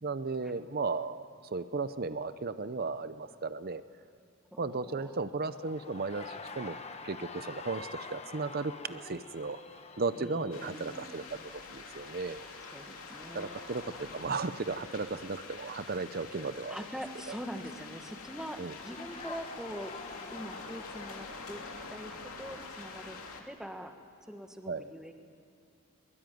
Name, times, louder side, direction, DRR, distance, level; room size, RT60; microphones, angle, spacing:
voice 1, 0.0-3.8 4.6-6.8 7.0-9.6 10.0-11.2 11.5-12.5 13.3-16.8 18.6-18.7 24.7-24.8, right 3 dB, 45° right, 13 dB, 0.6 m, -35 dB
voice 2, 4.5-5.2 10.2-11.1 12.7-13.6 16.7-19.9 20.3-23.9 24.3-25.1, equal, 5° right, 5 dB, 1.5 m, -43 dB
sound 1, 5.5-22.1, left 4 dB, 30° left, 1.3 m, -49 dB
sound 2, 10.5-23.4, left 4 dB, 80° left, 2.6 m, -46 dB
22.0 x 21.5 x 9.3 m, 2.6 s
head